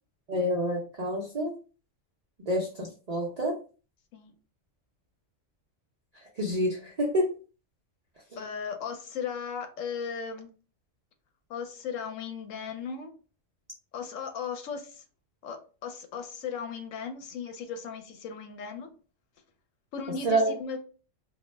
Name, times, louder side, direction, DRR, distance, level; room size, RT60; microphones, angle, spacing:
voice 1, 0.3-1.5 2.5-3.6 6.4-7.3 20.2-20.5, equal, 55° right, -3 dB, 0.4 m, -28 dB
voice 2, 8.4-10.5 11.5-13.1 13.9-15.0 15.4-18.9 19.9-20.8, left 6 dB, 80° left, 6 dB, 0.9 m, -36 dB
2.3 x 2.1 x 3.1 m, 0.36 s
omnidirectional pair, 1.3 m